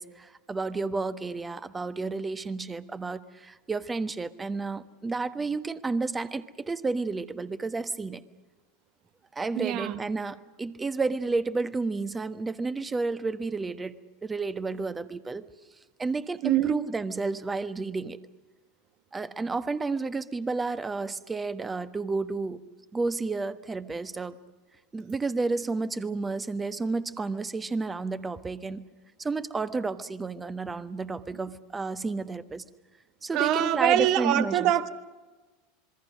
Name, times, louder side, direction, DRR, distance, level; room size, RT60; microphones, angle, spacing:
voice 1, 0.0-8.2 9.3-15.5 16.0-18.2 19.1-22.6 22.9-24.4 24.9-28.8 29.2-32.6 33.2-34.7, right 3 dB, 15° right, 13 dB, 1.2 m, -31 dB
voice 2, 9.5-10.0 16.4-16.8 33.3-34.9, right 12 dB, 50° right, 11 dB, 1.5 m, -24 dB
27.0 x 22.5 x 6.4 m, 1.2 s
figure-of-eight pair, 85°, 0 cm